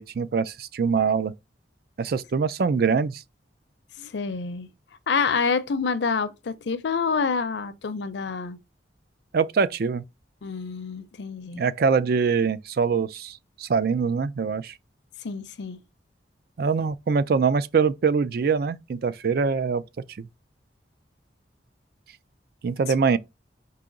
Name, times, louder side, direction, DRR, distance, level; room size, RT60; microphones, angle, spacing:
voice 1, 0.0-1.3 2.0-3.2 9.3-10.0 11.5-14.7 16.6-19.8 20.2-20.3 22.6-23.2, right 5 dB, 55° right, 0.4 m, -23 dB
voice 2, 4.0-4.7 5.1-8.6 10.4-11.6 15.2-15.8, left 5 dB, 75° left, 0.5 m, -27 dB
4.9 x 2.8 x 3.8 m
head